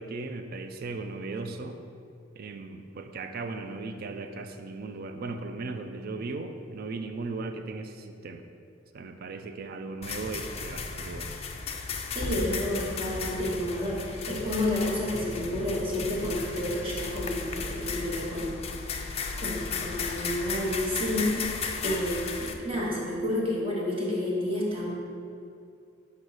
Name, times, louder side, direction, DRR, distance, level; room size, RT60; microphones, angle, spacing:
voice 1, 0.0-1.8 2.4-8.4 8.9-11.3, right 3 dB, 50° right, 7 dB, 0.4 m, -37 dB
sound 1, 10.0-22.5, left 4 dB, 30° left, 0.4 m, -35 dB
voice 2, 12.1-18.6 19.4-21.3 21.8-24.9, left 1 dB, 30° right, -5 dB, 1.4 m, -30 dB
6.3 x 5.3 x 4.0 m, 2.5 s
head